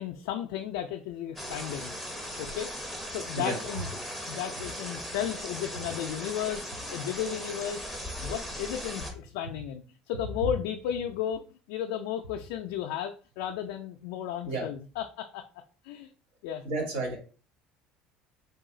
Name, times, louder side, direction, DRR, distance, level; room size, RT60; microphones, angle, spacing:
voice 1, 0.0-1.9 2.4-2.7 3.1-3.9 4.3-7.9 8.2-15.4 15.8-16.1 16.4-16.6, left 10 dB, 85° left, 3 dB, 0.4 m, -34 dB
sound 1, 1.4-9.1, equal, 5° right, 0.8 m, -38 dB
voice 2, 16.6-17.2, right 2 dB, 70° right, 0 dB, 2.0 m, -31 dB
3.9 x 2.4 x 3.7 m, 0.37 s
cardioid pair, 125°, 3 cm